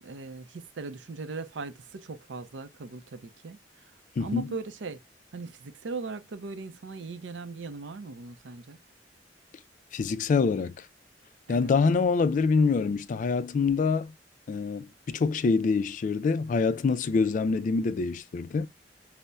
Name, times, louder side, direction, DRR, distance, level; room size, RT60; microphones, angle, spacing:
voice 1, 0.0-3.6 4.2-5.0 5.3-8.8 11.5-11.7, right 3 dB, 85° right, 0.5 m, -39 dB
voice 2, 4.2-4.5 9.9-10.7 11.5-14.1 14.5-18.7, left 4 dB, 45° left, 0.3 m, -25 dB
5.4 x 2.0 x 2.2 m
head